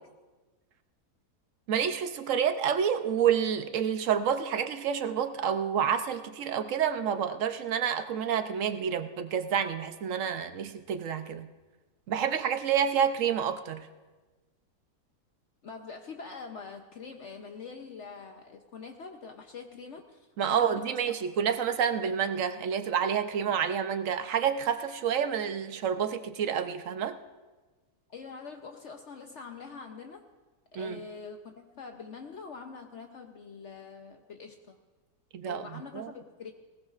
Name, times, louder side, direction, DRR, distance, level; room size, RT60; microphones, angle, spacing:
voice 1, 1.7-11.5 12.1-13.9 20.4-27.2 30.8-31.0 35.3-36.1, right 8 dB, 60° right, 9 dB, 0.9 m, -29 dB
voice 2, 15.6-21.1 28.1-30.3 30.7-34.8 35.5-36.5, left 5 dB, 55° left, 4 dB, 0.9 m, -44 dB
20.0 x 18.5 x 2.5 m, 1.3 s
omnidirectional pair, 1.7 m